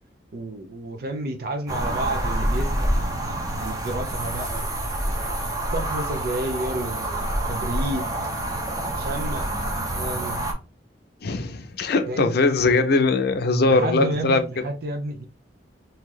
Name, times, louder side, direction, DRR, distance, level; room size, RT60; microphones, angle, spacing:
voice 1, 0.3-4.7 5.1-5.2 5.7-8.1 8.9-9.6 9.9-10.4 12.1-12.3 13.7-15.3, right 1 dB, 60° right, 0.6 m, -31 dB
sound 1, 1.7-10.5, right 1 dB, 20° right, 0.8 m, -27 dB
voice 2, 11.2-14.4, left 3 dB, 60° left, 0.6 m, -21 dB
3.0 x 2.7 x 3.7 m
head